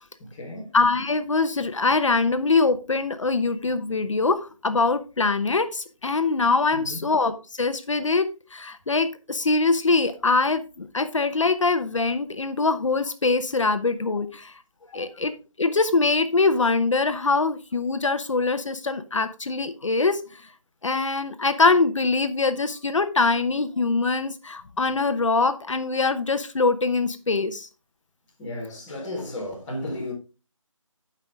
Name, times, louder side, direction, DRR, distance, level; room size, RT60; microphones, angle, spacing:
voice 1, 0.2-0.7 6.7-7.0 14.9-15.1 28.4-30.1, left 1 dB, 5° left, 1.6 m, -34 dB
voice 2, 0.7-14.5 14.9-20.5 20.8-27.7, left 3 dB, 65° left, 0.9 m, -23 dB
12.5 x 5.6 x 3.6 m
figure-of-eight pair, 175°, 17 cm